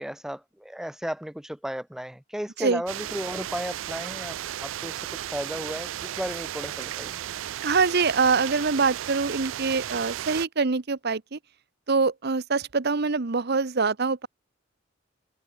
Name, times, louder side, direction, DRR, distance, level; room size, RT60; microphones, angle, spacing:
voice 1, 0.0-7.2, equal, ahead, 0.4 m, -34 dB
sound 1, 2.9-10.5, right 12 dB, 80° right, 0.4 m, -34 dB
voice 2, 7.6-11.4 11.9-14.3, right 4 dB, 55° right, 0.9 m, -24 dB
head